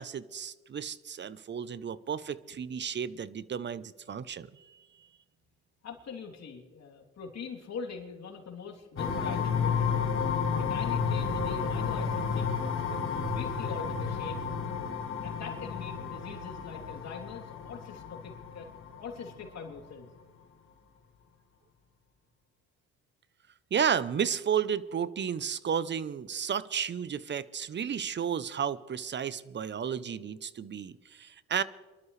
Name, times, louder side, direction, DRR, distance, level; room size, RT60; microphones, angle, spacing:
voice 1, 0.0-4.5 23.7-31.6, right 8 dB, 35° right, 17 dB, 0.7 m, -32 dB
voice 2, 5.8-10.2 10.6-14.4 15.2-18.7 18.9-20.1, left 5 dB, 60° left, 1 dB, 3.2 m, -43 dB
sound 1, 9.0-19.5, left 6 dB, 45° left, 1.7 m, -32 dB
24.0 x 12.5 x 3.3 m, 1.2 s
cardioid pair, 90°, 30 cm